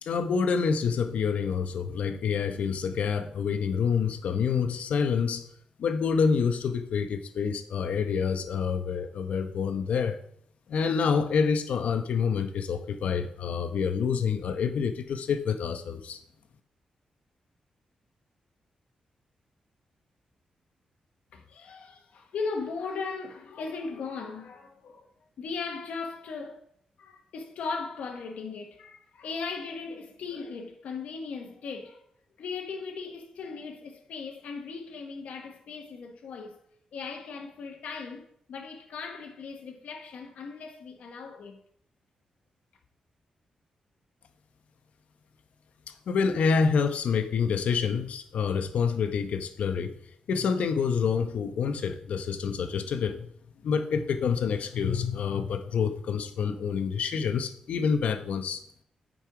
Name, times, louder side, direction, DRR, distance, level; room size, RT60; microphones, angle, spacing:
voice 1, 0.0-5.4 5.8-10.2 10.7-16.2 46.1-50.0 50.3-53.3 53.6-58.6, left 6 dB, 70° left, 0.8 m, -27 dB
voice 2, 21.3-26.6 27.0-32.1 32.4-36.6 36.9-41.6, left 4 dB, 90° left, 1.2 m, -38 dB
8.8 x 5.4 x 4.9 m
wide cardioid pair, 165°, 2 cm